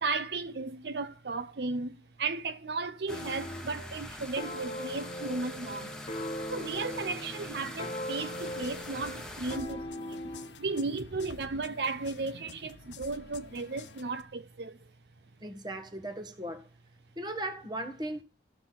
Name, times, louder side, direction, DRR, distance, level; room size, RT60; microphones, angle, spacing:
voice 1, 0.0-6.0 6.5-10.2 10.6-14.8, right 3 dB, 65° right, 0.6 m, -35 dB
sound 1, 3.1-3.7 4.4-10.6, left 1 dB, 30° left, 1.2 m, -40 dB
sound 2, 3.1-9.6, left 1 dB, 5° left, 1.3 m, -43 dB
sound 3, 8.3-14.2, left 5 dB, 80° left, 1.0 m, -50 dB
voice 2, 15.4-16.7 17.1-18.2, right 1 dB, 25° right, 1.6 m, -37 dB
14.5 x 6.1 x 5.7 m
head